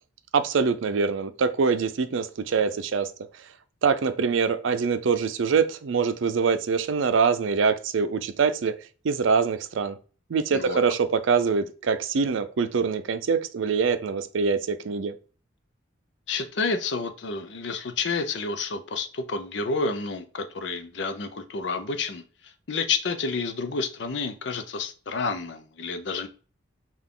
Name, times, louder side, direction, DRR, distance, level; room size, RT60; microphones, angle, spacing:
voice 1, 0.3-3.1 3.8-8.7 9.0-10.0 10.3-15.1, right 5 dB, 85° right, 0.5 m, -24 dB
voice 2, 16.3-26.3, left 4 dB, 70° left, 0.6 m, -30 dB
5.8 x 2.4 x 3.6 m
head